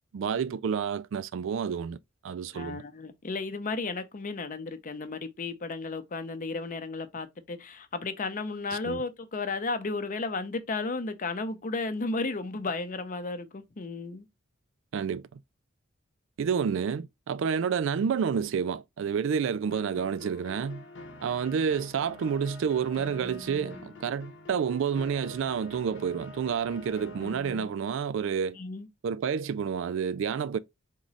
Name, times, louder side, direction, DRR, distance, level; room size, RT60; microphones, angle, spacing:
voice 1, 0.1-2.0 2.2-2.8 8.8-9.0 14.9-15.4 16.4-20.8 21.2-28.6 29.0-30.6, right 7 dB, 70° right, 0.3 m, -29 dB
voice 2, 2.5-14.2 16.5-16.6 28.5-28.9, left 3 dB, 40° left, 0.6 m, -34 dB
sound 1, 19.7-27.7, left 2 dB, 65° left, 0.9 m, -46 dB
3.7 x 3.1 x 3.9 m
head